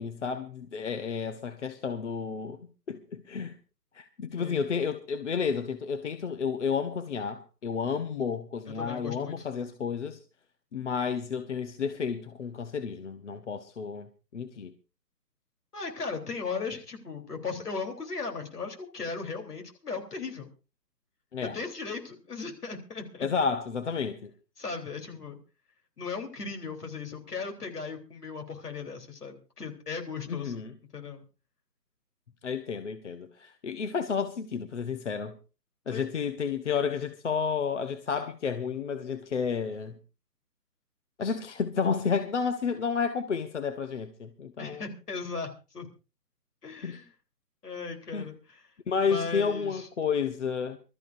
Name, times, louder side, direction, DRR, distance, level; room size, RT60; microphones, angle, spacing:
voice 1, 0.0-2.6 2.9-3.6 3.9-10.2 10.7-14.1 14.3-14.7 21.3-21.6 23.2-24.3 30.3-30.7 32.4-35.3 35.9-39.9 41.2-44.8 46.8-47.0 48.1-48.3 48.9-50.8, left 6 dB, 45° left, 1.0 m, -31 dB
voice 2, 8.7-9.5 15.7-20.5 21.4-23.3 24.6-25.4 26.0-30.6 30.9-31.2 35.9-36.1 44.6-45.9 46.6-47.1 47.6-48.7 49.0-49.9, left 4 dB, 65° left, 3.7 m, -37 dB
26.0 x 13.5 x 2.6 m
figure-of-eight pair, 150°, 49 cm